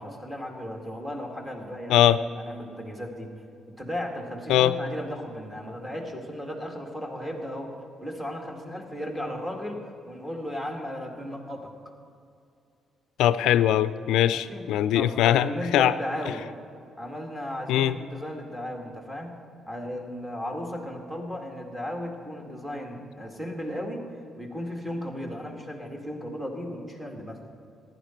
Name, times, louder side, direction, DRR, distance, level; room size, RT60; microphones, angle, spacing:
voice 1, 0.0-2.0 2.3-3.3 3.8-7.7 8.0-11.7 14.3-14.7 14.9-16.5 17.0-19.4 19.7-24.0 24.4-27.4, equal, 10° right, 0 dB, 2.2 m, -35 dB
voice 2, 1.9-2.2 4.5-4.7 13.2-15.9 17.7-18.0, left 11 dB, 90° left, 14 dB, 0.3 m, -21 dB
15.0 x 10.5 x 4.5 m, 2.4 s
cardioid pair, 90°, 0 cm